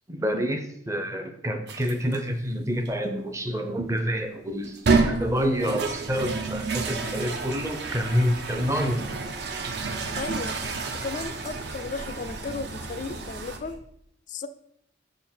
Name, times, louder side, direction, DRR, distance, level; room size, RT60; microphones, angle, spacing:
voice 1, 0.1-9.1, equal, 15° right, 7 dB, 0.6 m, -28 dB
sound 1, 1.7-2.2 2.9-3.0 4.6-13.6, right 4 dB, 55° right, 0.6 m, -30 dB
sound 2, 6.1-13.8, right 1 dB, 80° right, 1.3 m, -45 dB
voice 2, 10.2-10.5 10.9-13.8 14.3-14.5, left 4 dB, 40° left, 13 dB, 0.3 m, -35 dB
6.8 x 3.8 x 4.4 m, 0.72 s
head